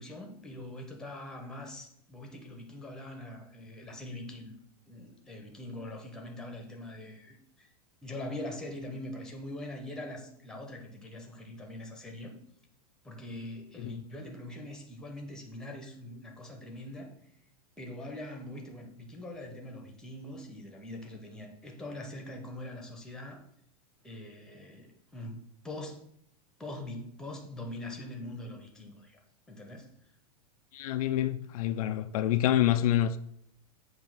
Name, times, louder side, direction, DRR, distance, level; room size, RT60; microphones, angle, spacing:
voice 1, 0.0-4.5 4.9-7.7 8.0-12.3 13.0-17.1 17.8-23.4 24.0-26.1 26.6-29.2 29.5-29.9, left 1 dB, 5° left, 0.9 m, -43 dB
voice 2, 30.7-33.2, left 12 dB, 65° left, 0.4 m, -27 dB
7.5 x 2.8 x 5.5 m
supercardioid pair, 155°, 20 cm